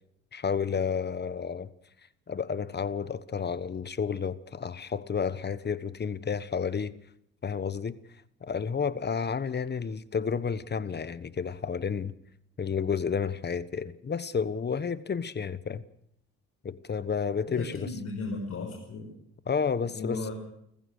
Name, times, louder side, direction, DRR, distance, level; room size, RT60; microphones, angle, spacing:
voice 1, 0.3-1.7 2.3-6.9 7.4-8.0 8.4-12.1 12.6-15.8 16.6-17.9 19.5-20.3, left 6 dB, 35° left, 1.2 m, -31 dB
voice 2, 17.5-19.1 19.9-20.3, left 3 dB, 55° left, 5.8 m, -35 dB
29.5 x 15.0 x 6.6 m
cardioid pair, 90°, 30 cm